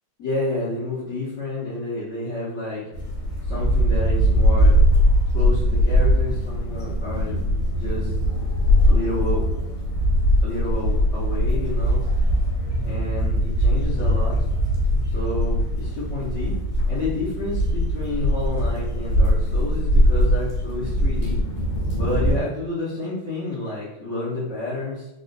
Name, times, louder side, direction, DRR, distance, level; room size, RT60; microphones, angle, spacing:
voice 1, 0.2-2.8 3.5-4.7 5.3-7.3 7.7-8.1 8.9-9.4 10.4-12.0 12.8-14.4 15.1-16.6 16.9-21.4 21.9-25.1, left 2 dB, 55° left, -10 dB, 0.8 m, -30 dB
sound 1, 2.9-22.4, equal, 80° left, 1.6 m, -21 dB
3.8 x 2.4 x 2.5 m, 0.92 s
omnidirectional pair, 2.3 m